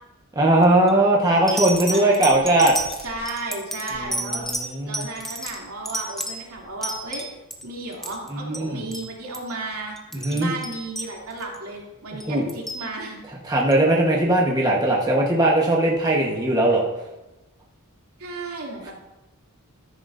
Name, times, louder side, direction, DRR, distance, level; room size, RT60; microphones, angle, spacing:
voice 1, 0.4-2.8 3.9-5.0 8.3-8.8 10.1-10.5 12.3-12.5 13.4-16.9, right 1 dB, 15° right, -2 dB, 1.2 m, -19 dB
sound 1, 0.6-0.9 1.5-7.6 7.9-8.7 8.9-9.1 9.3-9.5 10.0-11.6 12.2-12.8 13.7-13.8, right 1 dB, ahead, 1.0 m, -31 dB
voice 2, 1.9-2.6 3.0-4.5 4.8-7.3 7.6-10.0 10.3-13.2 18.2-18.9, right 2 dB, 80° right, -3 dB, 2.8 m, -34 dB
13.5 x 10.0 x 2.6 m, 1.0 s
head